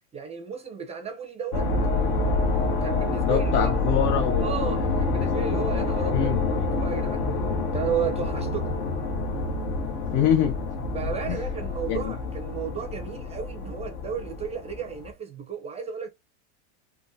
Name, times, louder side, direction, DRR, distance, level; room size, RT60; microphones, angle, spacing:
voice 1, 0.1-1.7 2.8-3.7 4.4-7.4 7.7-8.8 10.9-16.1, right 7 dB, 15° right, 0.5 m, -33 dB
sound 1, 1.5-15.1, left 3 dB, 60° left, 1.2 m, -27 dB
voice 2, 3.2-4.4 4.7-5.6 6.1-6.4 10.1-10.6 11.3-11.4 11.9-12.1, left 9 dB, 45° left, 0.6 m, -25 dB
3.6 x 2.2 x 2.6 m
supercardioid pair, 115°, 37 cm